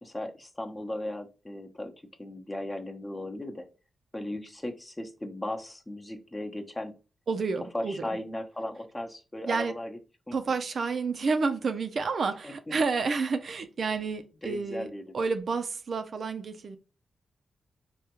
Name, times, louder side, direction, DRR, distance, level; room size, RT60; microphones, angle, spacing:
voice 1, 0.0-1.9 2.2-3.7 4.1-6.9 7.7-10.0 10.3-10.4 12.4-12.7 14.4-15.1, left 1 dB, 20° left, 0.7 m, -37 dB
voice 2, 7.3-8.1 9.5-9.7 10.3-14.9 15.1-16.8, right 4 dB, 60° right, 0.4 m, -30 dB
3.4 x 2.2 x 2.9 m
cardioid pair, 60°, 0 cm